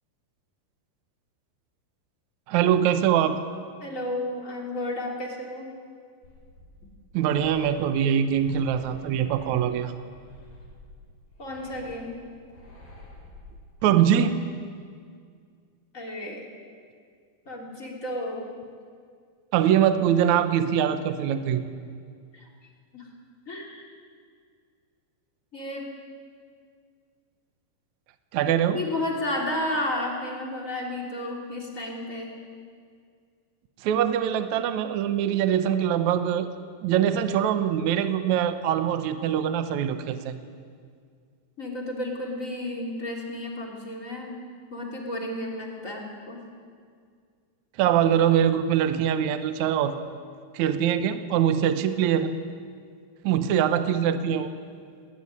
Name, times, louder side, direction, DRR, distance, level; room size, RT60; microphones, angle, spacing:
voice 1, 2.5-3.4 7.1-9.9 13.8-14.4 19.5-21.6 28.3-28.8 33.8-36.5 36.8-40.4 47.8-50.0 50.5-52.3 53.2-54.5, right 9 dB, 70° right, 9 dB, 1.9 m, -23 dB
voice 2, 3.8-5.7 11.4-12.2 15.9-16.4 17.4-18.5 22.3-22.5 22.9-23.1 23.5-23.9 25.5-25.9 28.7-32.3 41.6-44.4 44.7-46.4, left 1 dB, 20° left, -1 dB, 3.4 m, -32 dB
sound 1, 6.2-13.9, left 1 dB, 80° left, 8.1 m, -49 dB
20.0 x 19.0 x 9.8 m, 2.1 s
omnidirectional pair, 4.5 m